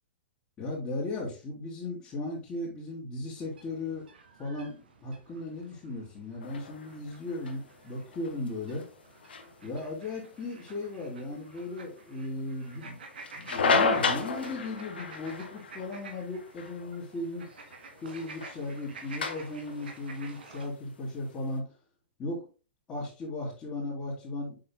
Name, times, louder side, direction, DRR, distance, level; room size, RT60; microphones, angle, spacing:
voice 1, 0.6-4.0 4.4-8.9 9.6-13.0 13.3-17.5 18.0-21.7 22.2-22.5 22.9-24.6, left 2 dB, 20° left, -9 dB, 4.1 m, -36 dB
sound 1, 3.4-20.7, right 4 dB, 60° right, 2.5 m, -50 dB
sound 2, 6.4-21.5, left 4 dB, 60° left, 1.5 m, -34 dB
8.0 x 7.8 x 2.3 m, 0.33 s
figure-of-eight pair, 115°, 6 cm